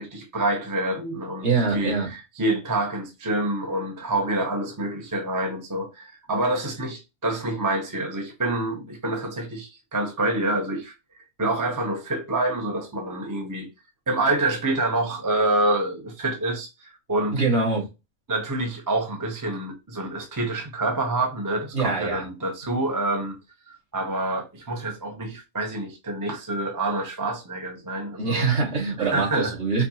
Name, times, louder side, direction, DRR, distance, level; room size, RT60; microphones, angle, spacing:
voice 1, 0.0-1.5 1.7-10.9 11.4-13.7 14.1-17.4 18.3-23.4 23.9-28.5 29.0-29.5, right 2 dB, 20° right, 0.5 m, -27 dB
voice 2, 1.4-2.1 17.3-17.9 21.7-22.2 28.2-29.9, right 4 dB, 45° right, 1.7 m, -24 dB
4.4 x 2.7 x 2.8 m
omnidirectional pair, 1.4 m